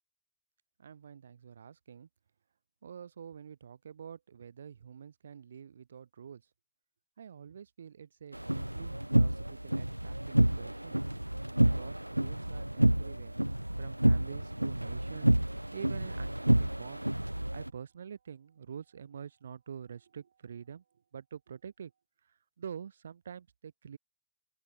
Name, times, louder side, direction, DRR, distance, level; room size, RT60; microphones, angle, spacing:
voice 1, 0.8-2.1 2.8-6.4 7.2-11.0 11.6-13.4 13.8-17.1 17.5-20.8 21.1-21.9 22.2-24.0, right 7 dB, 70° right, 6.2 m, -47 dB
sound 1, 8.3-17.7, right 1 dB, 85° right, 0.5 m, -29 dB
open air
figure-of-eight pair, 90°, 0 cm